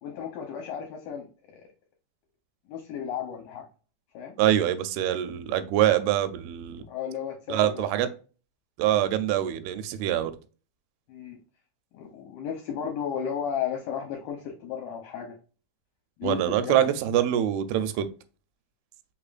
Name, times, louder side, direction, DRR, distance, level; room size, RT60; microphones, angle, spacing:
voice 1, 0.0-1.7 2.7-3.6 4.1-4.3 6.9-7.9 11.1-11.4 11.9-15.4 16.2-16.8, left 8 dB, 75° left, 2.3 m, -34 dB
voice 2, 4.4-6.8 7.5-8.1 8.8-10.3 16.2-18.1, right 11 dB, 85° right, 2.4 m, -24 dB
5.5 x 3.5 x 2.4 m
omnidirectional pair, 4.5 m